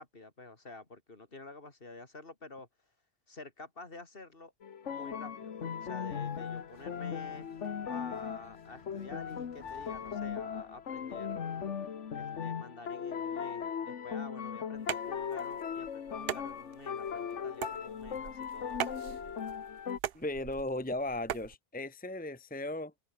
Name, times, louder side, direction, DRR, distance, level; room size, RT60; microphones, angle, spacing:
voice 1, 0.0-2.7 3.3-4.5 4.8-7.5 7.8-11.8 12.1-18.9, left 3 dB, 50° left, 2.9 m, -49 dB
sound 1, 4.6-20.0, left 7 dB, 80° left, 1.5 m, -38 dB
sound 2, 5.3-12.6, left 1 dB, 25° left, 7.5 m, -64 dB
sound 3, 14.7-21.5, right 9 dB, 60° right, 0.9 m, -41 dB
voice 2, 20.1-22.9, left 1 dB, 10° left, 1.2 m, -36 dB
open air
omnidirectional pair, 1.2 m